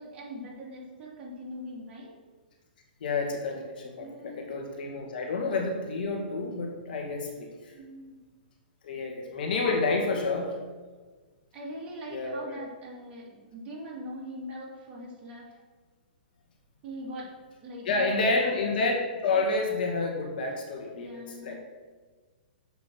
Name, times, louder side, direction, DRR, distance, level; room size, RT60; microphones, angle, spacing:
voice 1, 0.0-2.1 4.0-4.9 7.7-8.2 11.5-15.6 16.8-17.3 17.6-18.1 18.4-18.5 19.3-19.4 20.9-21.6, equal, 25° right, -4 dB, 2.5 m, -42 dB
voice 2, 3.0-7.7 8.8-10.5 12.1-12.6 17.9-18.9 19.2-21.6, left 3 dB, 65° left, 1 dB, 2.0 m, -29 dB
7.4 x 5.5 x 6.1 m, 1.4 s
hypercardioid pair, 150°, 5 cm